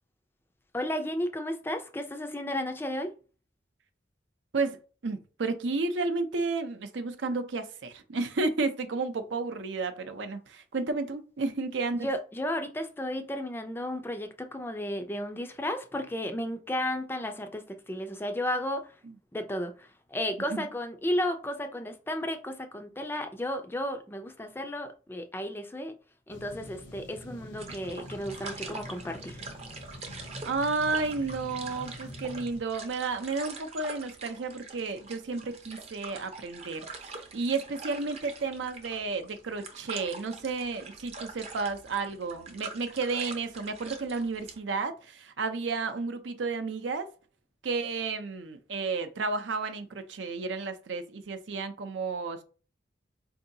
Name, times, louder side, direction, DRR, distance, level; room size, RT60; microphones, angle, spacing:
voice 1, 0.7-3.1 12.0-19.0 19.3-25.9 26.3-29.4, left 1 dB, 10° left, 0.4 m, -33 dB
voice 2, 4.5-12.1 19.0-19.1 20.5-20.7 30.4-47.1 47.6-52.4, right 3 dB, 80° right, 0.6 m, -32 dB
sound 1, 26.3-32.6, left 1 dB, 75° left, 0.8 m, -45 dB
sound 2, 27.6-44.6, right 4 dB, 35° right, 0.6 m, -44 dB
4.5 x 2.7 x 2.6 m
head